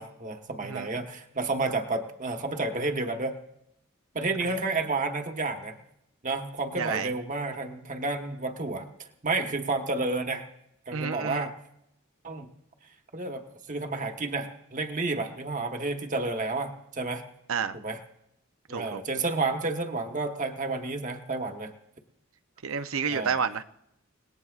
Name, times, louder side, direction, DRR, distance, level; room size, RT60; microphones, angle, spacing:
voice 1, 0.0-3.4 4.1-5.8 6.2-8.9 9.2-10.4 10.9-11.5 12.2-12.5 13.1-17.2 17.7-18.0 18.7-21.7 23.1-23.3, right 3 dB, 35° right, 1.2 m, -31 dB
voice 2, 6.8-7.1 10.9-11.5 17.5-17.8 18.7-19.0 22.6-23.6, right 6 dB, 75° right, 0.7 m, -30 dB
29.5 x 18.5 x 2.4 m
head